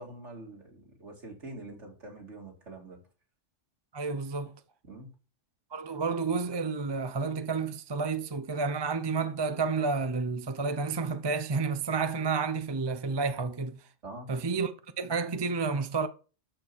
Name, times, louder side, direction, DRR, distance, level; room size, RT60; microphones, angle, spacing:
voice 1, 0.0-3.0 4.8-5.1 14.0-14.4, right 2 dB, 65° right, 3.0 m, -45 dB
voice 2, 3.9-4.5 5.7-13.8 14.3-14.7 15.0-16.1, right 4 dB, 25° right, 0.7 m, -30 dB
12.5 x 4.9 x 6.1 m
omnidirectional pair, 1.3 m